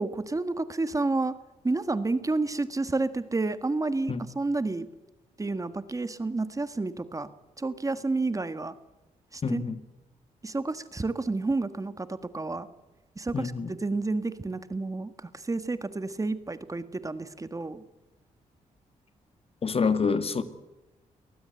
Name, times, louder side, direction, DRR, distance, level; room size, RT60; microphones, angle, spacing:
voice 1, 0.0-1.3 1.6-4.9 5.4-7.3 7.6-8.7 9.3-9.6 10.4-12.1 12.3-12.7 13.2-13.5 13.8-15.1 15.5-17.8, right 3 dB, 25° right, 12 dB, 1.6 m, -30 dB
voice 2, 9.4-9.8 13.3-13.7 19.6-20.4, left 5 dB, 45° left, 11 dB, 1.9 m, -27 dB
22.5 x 19.0 x 8.0 m, 1.0 s
cardioid pair, 85°, 14 cm